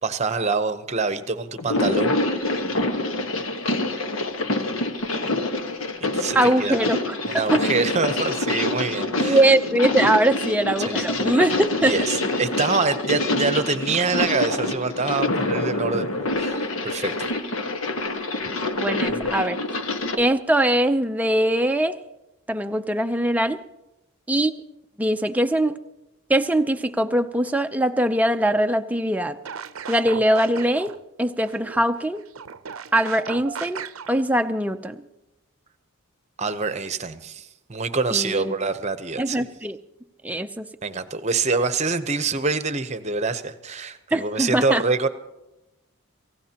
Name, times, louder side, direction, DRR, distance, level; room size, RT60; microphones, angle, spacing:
voice 1, 0.0-2.2 5.2-5.3 6.0-6.8 7.2-9.4 10.9-11.0 11.8-16.1 16.4-17.3 36.4-39.4 40.8-45.1, right 4 dB, 30° right, 11 dB, 0.8 m, -25 dB
sound 1, 1.6-20.2, left 2 dB, 70° left, 1.4 m, -26 dB
voice 2, 6.3-7.6 9.2-12.0 14.1-14.2 18.8-19.6 20.2-22.0 22.5-23.6 24.3-24.5 25.0-25.8 26.3-29.4 29.9-30.9 31.2-32.2 32.9-33.8 34.1-35.0 38.1-38.5 39.2-39.8 40.2-40.7 44.1-44.8, right 1 dB, 5° right, 7 dB, 0.5 m, -22 dB
sound 2, 29.5-31.0 31.5-34.2, right 6 dB, 75° right, 0.7 m, -36 dB
28.5 x 16.0 x 2.9 m, 0.96 s
head